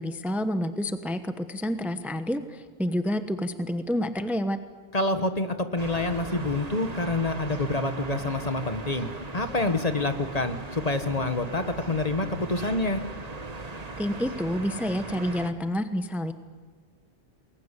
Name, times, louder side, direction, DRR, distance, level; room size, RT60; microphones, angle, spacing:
voice 1, 0.0-4.6 14.0-16.3, equal, ahead, 9 dB, 1.0 m, -29 dB
voice 2, 4.9-9.1 9.3-13.0, left 2 dB, 35° left, 8 dB, 1.4 m, -27 dB
sound 1, 5.8-15.5, right 3 dB, 35° right, 1.6 m, -38 dB
29.0 x 21.0 x 8.3 m, 1.5 s
omnidirectional pair, 1.1 m